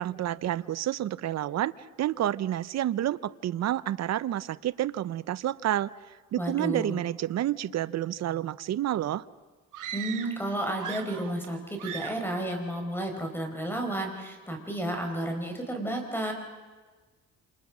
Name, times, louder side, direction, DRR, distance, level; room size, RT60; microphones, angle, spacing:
voice 1, 0.0-1.7 2.0-5.9 6.3-9.2, right 12 dB, 60° right, 16 dB, 0.8 m, -29 dB
voice 2, 6.4-7.0 9.9-16.3, right 1 dB, 5° left, 4 dB, 5.0 m, -32 dB
sound 1, 9.7-10.5 10.7-11.5 11.8-12.3, right 10 dB, 80° right, 1.6 m, -39 dB
28.5 x 28.0 x 6.2 m, 1.3 s
cardioid pair, 115°, 31 cm